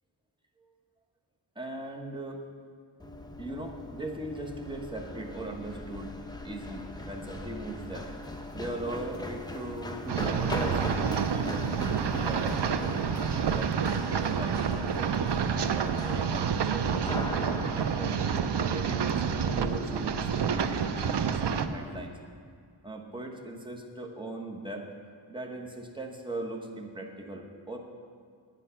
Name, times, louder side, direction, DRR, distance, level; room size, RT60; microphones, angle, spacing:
voice 1, 1.5-2.4 3.4-8.1 8.5-13.0 13.3-15.1 15.5-18.2 18.7-22.2 22.8-24.9 25.3-27.8, right 2 dB, 10° right, 1 dB, 1.1 m, -39 dB
Run, 3.0-22.1, left 1 dB, 10° left, 0.7 m, -40 dB
sound 1, 10.1-21.7, right 7 dB, 60° right, 0.6 m, -29 dB
9.8 x 9.2 x 5.7 m, 2.1 s
wide cardioid pair, 100°, 47 cm